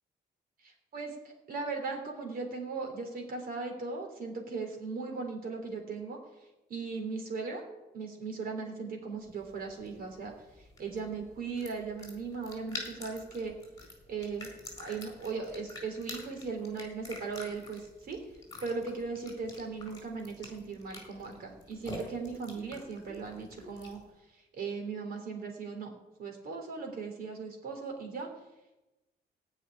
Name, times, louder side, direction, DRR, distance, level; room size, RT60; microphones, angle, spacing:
voice 1, 0.6-1.2 1.5-6.2 6.7-7.6 7.9-13.5 14.1-14.5 14.8-18.2 18.6-24.0 24.3-28.3, right 4 dB, 55° right, 2 dB, 3.4 m, -38 dB
sound 1, 9.3-24.1, left 2 dB, 20° left, 4.6 m, -48 dB
16.0 x 5.7 x 10.0 m, 1.0 s
cardioid pair, 165°, 18 cm